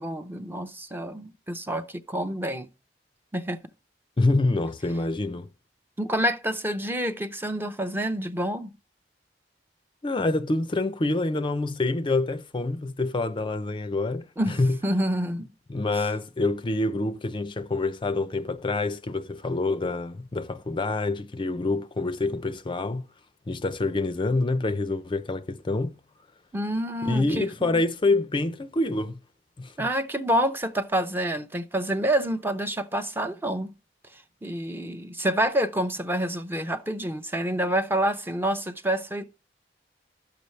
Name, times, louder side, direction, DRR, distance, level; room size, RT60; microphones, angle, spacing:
voice 1, 0.0-2.7 3.3-3.6 6.0-8.7 14.4-15.5 26.5-27.8 29.8-33.7 34.1-39.2, right 1 dB, 15° right, 0.6 m, -28 dB
voice 2, 4.2-5.5 10.0-14.8 15.7-23.0 23.5-26.0 27.0-29.2 29.6-29.9, left 2 dB, 30° left, 0.5 m, -26 dB
12.0 x 6.8 x 3.2 m
head